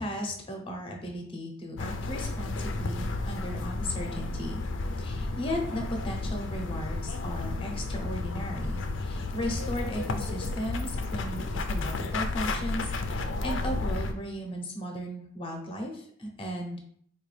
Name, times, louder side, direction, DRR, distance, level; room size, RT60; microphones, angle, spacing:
voice 1, 0.0-4.6 5.0-16.8, equal, 25° left, 2 dB, 0.7 m, -36 dB
sound 1, 1.8-14.1, left 2 dB, 65° left, 0.4 m, -32 dB
4.4 x 2.4 x 3.2 m, 0.62 s
head